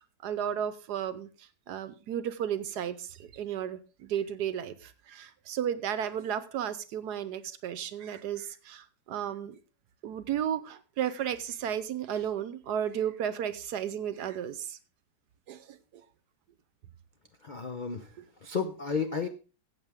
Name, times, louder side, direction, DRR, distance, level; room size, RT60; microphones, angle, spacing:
voice 1, 0.2-1.3 1.7-9.5 10.0-14.8 15.5-15.8, right 9 dB, 70° right, 13 dB, 1.2 m, -33 dB
voice 2, 17.4-18.1 18.4-19.3, left 5 dB, 60° left, 7 dB, 0.5 m, -32 dB
14.5 x 8.1 x 3.6 m, 0.33 s
omnidirectional pair, 2.0 m